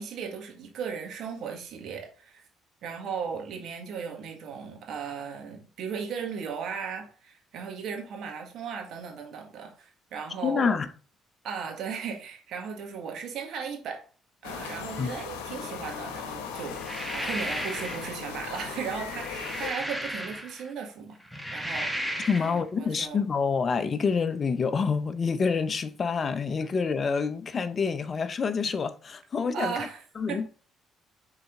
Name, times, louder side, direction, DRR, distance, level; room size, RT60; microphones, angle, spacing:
voice 1, 0.0-2.4 2.8-10.7 11.4-14.1 14.4-21.2 21.5-23.2 29.5-30.0 30.3-30.5, right 6 dB, 70° right, 1.8 m, -36 dB
voice 2, 10.4-10.9 15.0-15.1 22.3-29.7 30.2-30.5, left 5 dB, 45° left, 0.7 m, -27 dB
sound 1, 14.4-19.7, left 6 dB, 90° left, 0.9 m, -38 dB
sound 2, 16.7-18.2 19.0-20.7 21.2-22.6, equal, 5° right, 1.2 m, -34 dB
6.7 x 4.1 x 3.7 m
supercardioid pair, 60°, 0 cm